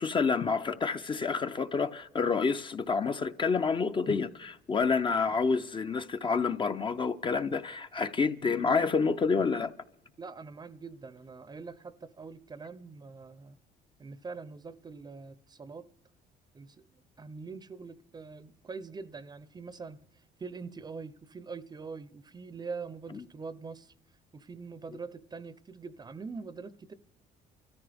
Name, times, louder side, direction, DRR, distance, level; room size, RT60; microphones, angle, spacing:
voice 1, 0.0-9.7, left 5 dB, 30° left, 0.5 m, -28 dB
voice 2, 10.2-13.6 14.0-15.9 16.5-20.0 20.4-23.9 24.3-26.9, right 4 dB, 25° right, 0.6 m, -43 dB
29.5 x 14.0 x 3.4 m
cardioid pair, 110°, 17 cm